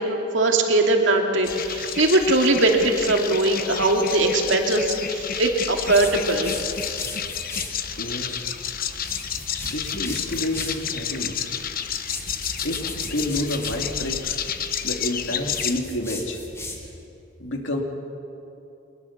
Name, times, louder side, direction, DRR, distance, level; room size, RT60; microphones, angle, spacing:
voice 1, 0.0-6.6, right 2 dB, 70° right, 2 dB, 2.5 m, -21 dB
sound 1, 1.4-15.8, left 8 dB, 45° left, 1.1 m, -30 dB
sound 2, 5.8-7.8 8.9-10.8 11.9-13.8 15.4-17.0, left 2 dB, 15° left, 2.1 m, -37 dB
voice 2, 8.0-8.5 9.5-11.5 12.6-14.5 14.8-16.4 17.4-17.8, left 1 dB, 65° left, 3 dB, 2.5 m, -29 dB
22.5 x 20.5 x 7.2 m, 2.8 s
head